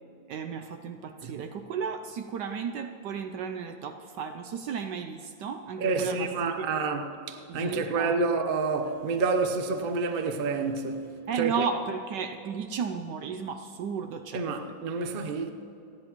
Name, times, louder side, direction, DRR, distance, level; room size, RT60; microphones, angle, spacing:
voice 1, 0.3-6.3 6.5-6.7 7.5-8.1 11.3-14.5, right 6 dB, 70° right, 1.1 m, -34 dB
voice 2, 5.8-11.1 11.4-11.7 14.3-15.5, right 4 dB, 45° right, 0.7 m, -28 dB
29.0 x 10.5 x 3.0 m
omnidirectional pair, 2.2 m